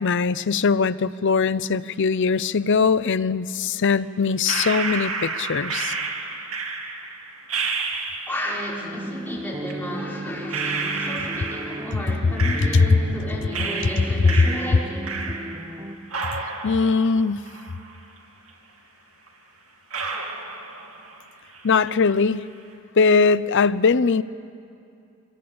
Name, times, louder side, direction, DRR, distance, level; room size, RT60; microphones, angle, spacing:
voice 1, 0.0-5.9 12.7-12.8 16.6-17.5 21.6-22.5 23.0-24.2, left 5 dB, 60° left, 15 dB, 0.6 m, -21 dB
sound 1, 4.5-8.6 9.7-9.8 10.5-13.2 13.5-15.8 16.1-18.2 18.5-18.6 19.3-19.4 19.9-21.2 21.5-22.1, right 4 dB, 80° right, 3.0 m, -31 dB
voice 2, 8.3-15.2, equal, 10° left, -5 dB, 5.6 m, -33 dB
sound 2, 8.8-16.0, right 1 dB, 20° right, 1.1 m, -34 dB
24.5 x 21.5 x 8.7 m, 2.5 s
head